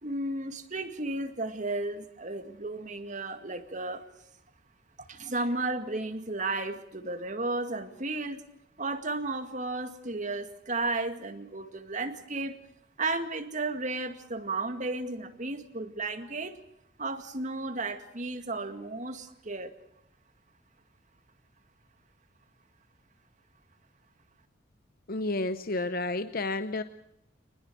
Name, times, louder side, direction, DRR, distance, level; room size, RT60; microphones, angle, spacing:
voice 1, 0.0-4.1 5.1-8.4 8.8-12.6 13.0-16.6 17.0-19.7, right 2 dB, 40° right, 7 dB, 2.1 m, -33 dB
voice 2, 25.1-26.8, left 2 dB, 50° left, 11 dB, 0.8 m, -31 dB
25.0 x 20.0 x 6.3 m, 0.78 s
head